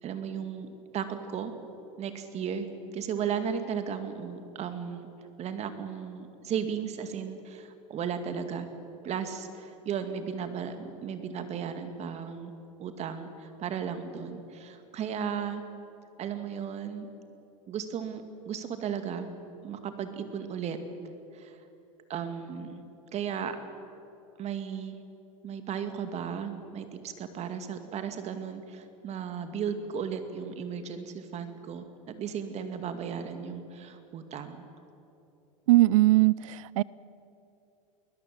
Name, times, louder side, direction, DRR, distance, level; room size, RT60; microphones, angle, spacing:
voice 1, 0.0-1.5 2.0-2.7 2.9-5.1 5.4-8.7 9.0-12.5 12.8-15.6 16.2-17.1 17.7-19.3 19.6-20.8 21.3-21.6 22.1-22.8 23.1-23.6 24.4-25.0 25.4-34.7, right 7 dB, 40° right, 8 dB, 2.3 m, -35 dB
voice 2, 35.7-36.8, right 17 dB, 70° right, 22 dB, 0.4 m, -21 dB
22.5 x 20.0 x 7.7 m, 2.7 s
hypercardioid pair, 100°, 17 cm